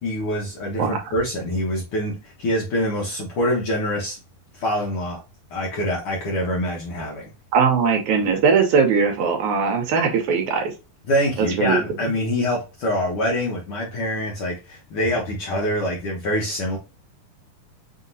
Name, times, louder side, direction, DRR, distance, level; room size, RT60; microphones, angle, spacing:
voice 1, 0.0-4.2 4.5-5.2 5.5-7.3 11.1-16.8, equal, 70° left, -2 dB, 1.3 m, -25 dB
voice 2, 7.5-10.7 11.4-11.8, right 5 dB, 75° right, 3 dB, 2.1 m, -20 dB
5.7 x 2.9 x 2.6 m, 0.29 s
omnidirectional pair, 3.7 m